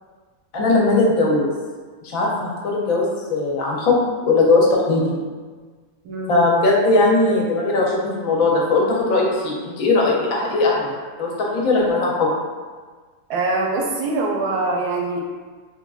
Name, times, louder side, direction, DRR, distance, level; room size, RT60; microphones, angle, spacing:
voice 1, 0.5-1.5 2.0-4.0 4.2-5.1 6.3-10.9 11.2-12.3, left 3 dB, 70° left, -3 dB, 0.9 m, -19 dB
voice 2, 6.0-6.4 13.3-15.2, right 2 dB, 80° right, -1 dB, 1.1 m, -23 dB
3.4 x 2.4 x 2.2 m, 1.5 s
omnidirectional pair, 1.6 m